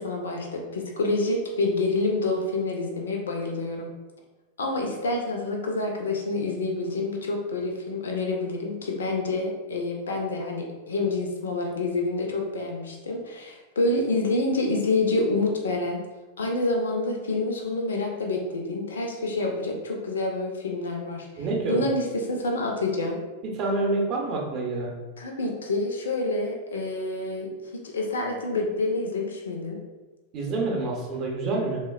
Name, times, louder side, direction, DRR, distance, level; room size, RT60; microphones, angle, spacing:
voice 1, 0.0-3.9 4.6-16.0 16.4-23.2 25.2-29.8, left 2 dB, 65° left, 1 dB, 0.4 m, -27 dB
voice 2, 21.4-21.8 23.5-24.9 30.3-31.8, right 3 dB, 35° right, -1 dB, 0.6 m, -27 dB
3.2 x 2.1 x 2.2 m, 1.2 s
figure-of-eight pair, 90°, 0 cm